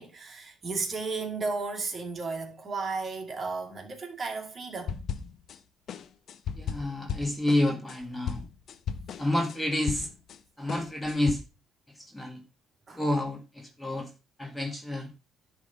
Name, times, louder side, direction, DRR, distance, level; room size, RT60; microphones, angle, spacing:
voice 1, 0.0-5.0 12.9-13.0, right 4 dB, 35° right, 2.5 m, -34 dB
sound 1, 4.9-5.6 5.9-10.4 10.7-11.3, left 7 dB, 55° left, 0.8 m, -36 dB
voice 2, 6.5-8.4 9.2-10.1 10.6-11.4 11.9-12.4 12.9-14.1 14.4-15.1, left 1 dB, 10° left, 1.6 m, -29 dB
10.5 x 3.8 x 6.7 m
cardioid pair, 105°, 0 cm